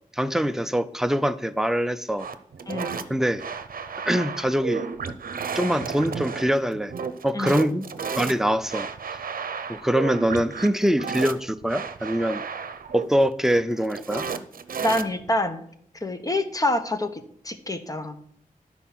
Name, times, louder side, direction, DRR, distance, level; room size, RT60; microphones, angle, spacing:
voice 1, 0.1-2.3 3.1-3.4 4.1-4.9 5.5-6.9 7.2-7.9 8.2-8.9 9.7-12.4 12.9-14.3, equal, 5° right, 11 dB, 0.4 m, -24 dB
sound 1, 2.2-15.4, right 6 dB, 80° right, 0.6 m, -33 dB
voice 2, 14.8-15.6 16.0-18.4, left 1 dB, 25° left, 8 dB, 0.8 m, -27 dB
11.5 x 4.6 x 5.8 m, 0.66 s
wide cardioid pair, 125°, 15 cm